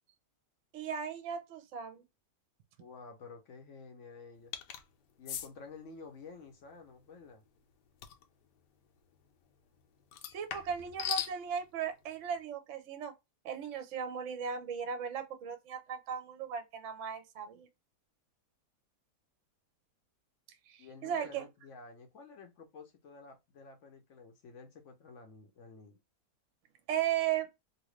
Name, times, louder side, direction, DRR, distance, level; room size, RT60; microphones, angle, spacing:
voice 1, 0.7-2.0 10.3-13.1 13.4-17.7 20.7-21.5 26.9-27.5, right 8 dB, 60° right, 0.9 m, -36 dB
voice 2, 2.8-4.5 5.2-7.4 20.8-26.0, left 4 dB, 60° left, 0.8 m, -51 dB
sound 1, 4.5-4.8 5.3-5.5 8.0-8.2 10.1-11.4, left 10 dB, 80° left, 1.2 m, -38 dB
2.9 x 2.7 x 3.1 m
omnidirectional pair, 1.8 m